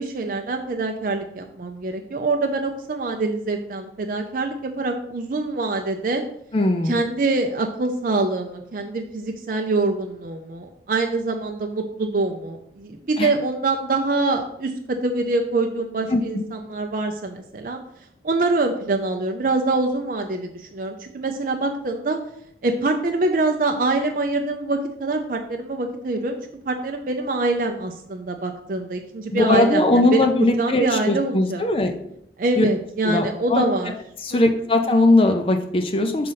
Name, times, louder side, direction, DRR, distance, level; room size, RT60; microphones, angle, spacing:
voice 1, 0.0-6.2 6.8-17.8 18.2-22.2 22.6-26.4 26.7-31.7 32.4-33.9 34.3-34.6, right 3 dB, 50° right, 4 dB, 0.5 m, -25 dB
voice 2, 6.5-7.0 13.2-13.3 16.1-16.4 29.3-31.9 32.6-32.7 33.0-33.6 34.2-36.3, left 2 dB, 30° left, 4 dB, 0.5 m, -20 dB
6.3 x 3.9 x 5.7 m, 0.74 s
head